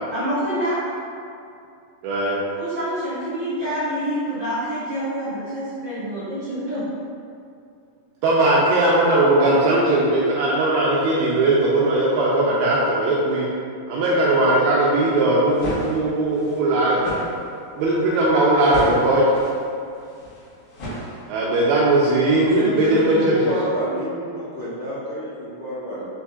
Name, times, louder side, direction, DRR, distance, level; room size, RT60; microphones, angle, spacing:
voice 1, 0.1-0.8 2.5-6.8, equal, 55° right, -15 dB, 1.4 m, -27 dB
voice 2, 2.0-2.4 8.2-13.5 13.9-17.0 17.8-19.2 21.3-23.6, right 2 dB, 85° right, -6 dB, 2.3 m, -19 dB
sound 1, 15.4-21.6, equal, 70° left, 2.9 m, -33 dB
voice 3, 22.4-26.0, equal, 85° left, -16 dB, 1.2 m, -27 dB
6.7 x 2.7 x 2.3 m, 2.5 s
omnidirectional pair, 4.9 m